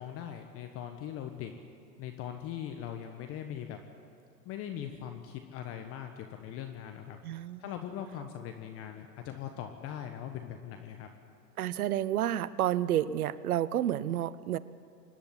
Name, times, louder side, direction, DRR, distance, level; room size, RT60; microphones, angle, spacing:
voice 1, 0.0-1.5 2.0-3.8 4.4-7.2 7.6-11.1, left 10 dB, 30° left, 5 dB, 1.2 m, -40 dB
voice 2, 7.2-7.6 11.6-14.6, right 11 dB, 60° right, 18 dB, 0.9 m, -30 dB
25.5 x 10.0 x 9.9 m, 2.6 s
hypercardioid pair, 120°, 49 cm